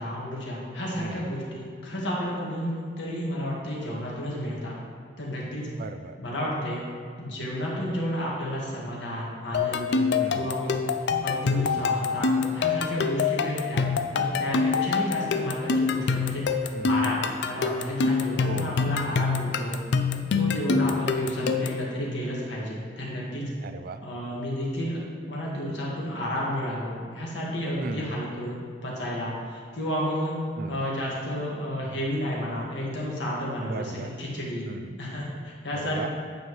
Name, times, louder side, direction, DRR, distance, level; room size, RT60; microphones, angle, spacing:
voice 1, 0.0-4.8 5.2-5.7 6.2-6.8 7.2-10.8 11.2-13.9 14.1-16.5 16.8-19.8 20.3-23.4 24.0-25.0 25.3-30.3 30.7-33.9 34.2-34.7 35.0-36.1, equal, 85° left, -4 dB, 1.7 m, -31 dB
voice 2, 1.0-1.3 5.8-6.2 10.2-10.6 16.7-17.1 18.4-18.9 20.8-21.0 23.6-24.0 27.8-28.2 30.6-30.9 33.6-34.2 34.7-35.0 35.7-36.1, right 4 dB, 55° right, 10 dB, 0.4 m, -37 dB
sound 1, 9.5-21.9, left 5 dB, 65° left, 0.4 m, -26 dB
8.8 x 5.4 x 3.1 m, 2.2 s
head